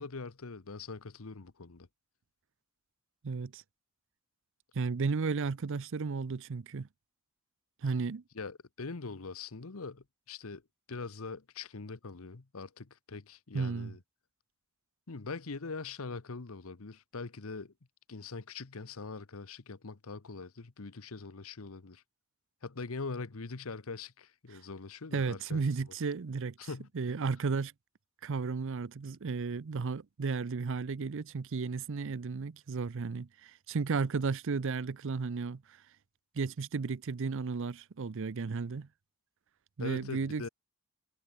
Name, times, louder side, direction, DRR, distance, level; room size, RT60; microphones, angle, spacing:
voice 1, 0.0-1.9 8.3-10.6 10.9-14.0 15.1-17.7 18.1-22.0 22.6-25.6 26.6-26.9 39.8-40.5, left 4 dB, 70° left, 1.0 m, -42 dB
voice 2, 3.2-3.6 4.7-6.9 7.8-8.2 13.5-13.9 25.1-26.5 26.9-27.7 28.2-35.8 36.3-38.9 39.8-40.5, right 4 dB, 60° right, 0.6 m, -34 dB
head